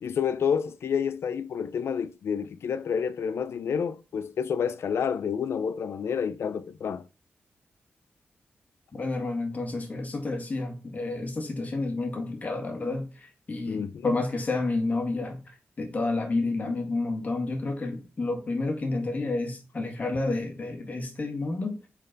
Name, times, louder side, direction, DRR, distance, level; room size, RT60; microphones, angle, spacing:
voice 1, 0.0-7.1 13.7-14.1, left 7 dB, 80° left, 0.5 m, -29 dB
voice 2, 8.9-15.4 15.8-21.8, left 2 dB, 40° left, 1.9 m, -30 dB
8.6 x 4.4 x 3.9 m
wide cardioid pair, 135°, 4 cm